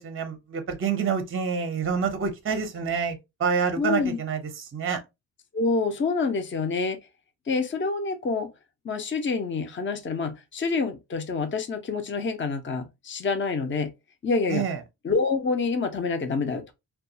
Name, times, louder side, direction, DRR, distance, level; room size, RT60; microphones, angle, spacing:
voice 1, 0.0-4.4 4.7-5.0 14.5-14.8, right 6 dB, 30° right, 0.6 m, -27 dB
voice 2, 3.8-4.2 5.5-7.0 7.5-8.5 8.8-13.9 14.2-14.6 15.0-16.6, left 4 dB, 30° left, 0.5 m, -27 dB
2.3 x 2.3 x 2.7 m
cardioid pair, 80°, 42 cm